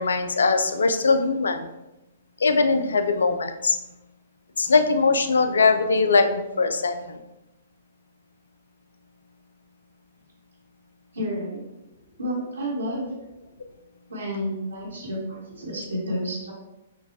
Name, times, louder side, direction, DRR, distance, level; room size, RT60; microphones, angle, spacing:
voice 1, 0.0-1.7 2.4-3.8 4.6-7.2, left 4 dB, 70° left, 8 dB, 0.4 m, -21 dB
voice 2, 11.1-11.7 12.2-13.1 14.1-16.5, equal, 80° right, -6 dB, 1.1 m, -30 dB
5.7 x 2.3 x 2.8 m, 0.96 s
figure-of-eight pair, 115°, 0 cm